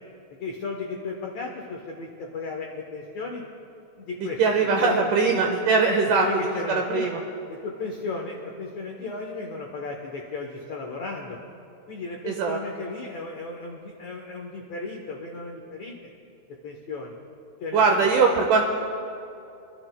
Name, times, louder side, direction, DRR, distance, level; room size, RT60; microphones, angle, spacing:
voice 1, 0.4-3.4 4.0-4.4 4.8-5.5 6.0-7.1 7.5-11.4 11.9-15.9 16.6-17.1 17.6-18.1, left 4 dB, 90° left, 0 dB, 1.5 m, -34 dB
voice 2, 4.4-6.3 6.7-7.2 12.3-12.6 17.7-18.6, right 4 dB, 80° right, 2 dB, 1.8 m, -21 dB
26.5 x 12.0 x 2.2 m, 2.7 s
omnidirectional pair, 4.5 m